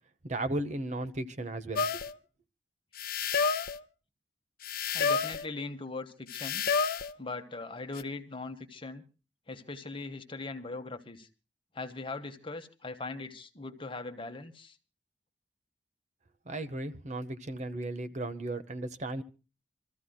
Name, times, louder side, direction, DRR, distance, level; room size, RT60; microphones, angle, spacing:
voice 1, 0.2-1.9 16.5-19.2, right 2 dB, 40° right, 0.9 m, -35 dB
sound 1, 1.8-2.1 3.0-3.8 4.6-5.5 6.3-7.1 8.0-8.1, left 5 dB, 55° left, 0.7 m, -29 dB
voice 2, 4.9-6.6 7.2-9.0 9.5-11.3 11.7-14.8, left 3 dB, 30° left, 1.1 m, -40 dB
26.5 x 14.0 x 2.3 m
head